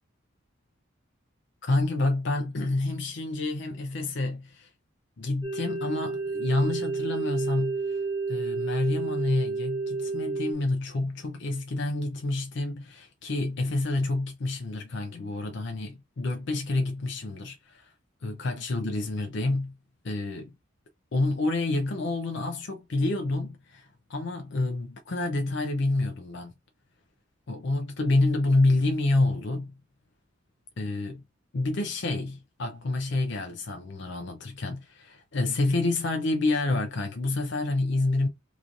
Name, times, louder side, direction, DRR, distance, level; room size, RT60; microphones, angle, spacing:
voice 1, 1.6-4.7 5.2-8.0 8.3-17.9 18.2-19.7 20.0-20.5 21.1-26.5 27.5-29.7 30.8-31.2 31.5-38.3, left 2 dB, 60° left, 0.6 m, -28 dB
sound 1, 5.4-10.5, right 4 dB, 15° right, 1.0 m, -30 dB
3.0 x 2.5 x 3.7 m
head